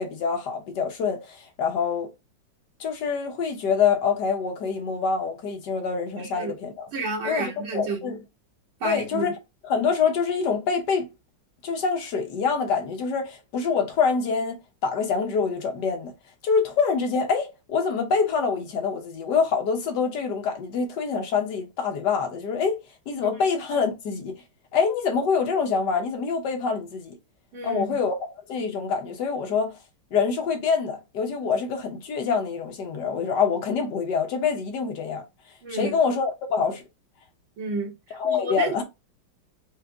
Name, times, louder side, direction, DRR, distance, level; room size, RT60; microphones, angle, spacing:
voice 1, 0.0-2.1 2.8-6.9 7.2-8.2 8.8-9.4 9.6-11.1 11.6-16.1 16.4-22.8 23.1-24.3 24.7-27.2 27.6-29.8 30.1-35.2 35.7-36.8 38.1-38.8, left 5 dB, 60° left, 1.5 m, -25 dB
voice 2, 6.2-6.5 6.9-8.0 8.8-9.3 23.2-23.4 27.5-28.0 35.6-36.0 37.6-37.9 38.2-38.8, right 3 dB, 80° right, 2.3 m, -31 dB
5.0 x 2.5 x 3.4 m
omnidirectional pair, 2.2 m